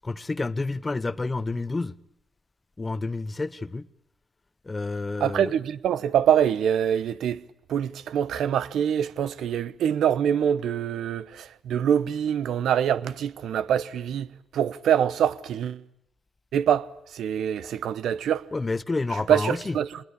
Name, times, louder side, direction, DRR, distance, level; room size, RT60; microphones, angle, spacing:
voice 1, 0.0-2.0 2.8-3.9 4.6-5.6 18.5-19.8, left 3 dB, 30° left, 1.0 m, -29 dB
voice 2, 5.2-7.4 7.7-14.3 14.5-15.8 16.5-18.4 19.3-20.0, right 9 dB, 70° right, 0.9 m, -25 dB
26.0 x 20.5 x 8.7 m
supercardioid pair, 55°, 0 cm